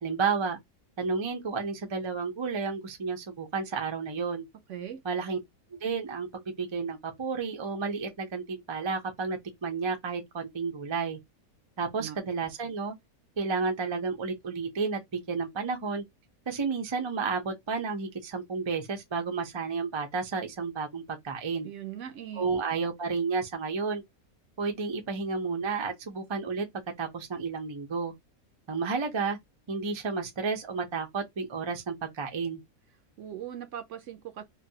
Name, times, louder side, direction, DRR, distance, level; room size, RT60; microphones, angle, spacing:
voice 1, 0.0-0.6 1.0-4.4 5.0-5.4 5.7-11.2 11.8-12.9 13.4-16.0 16.5-21.7 22.4-24.0 24.6-26.7 27.0-28.1 28.7-29.4 29.7-32.6, right 4 dB, 40° right, 0.4 m, -31 dB
voice 2, 4.7-5.0 12.0-12.2 21.6-22.5 33.2-34.4, right 10 dB, 65° right, 0.8 m, -39 dB
3.2 x 2.2 x 2.7 m
omnidirectional pair, 1.5 m